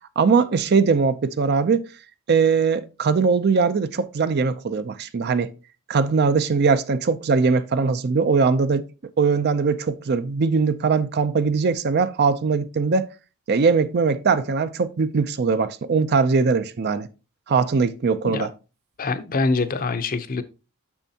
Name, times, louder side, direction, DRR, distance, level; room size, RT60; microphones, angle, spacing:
voice 1, 0.2-1.9 2.3-5.5 5.9-8.9 9.2-13.1 13.5-17.1 17.5-18.5, right 5 dB, 50° right, 0.5 m, -21 dB
voice 2, 19.0-20.4, left 3 dB, 40° left, 0.6 m, -24 dB
7.1 x 6.1 x 2.8 m
head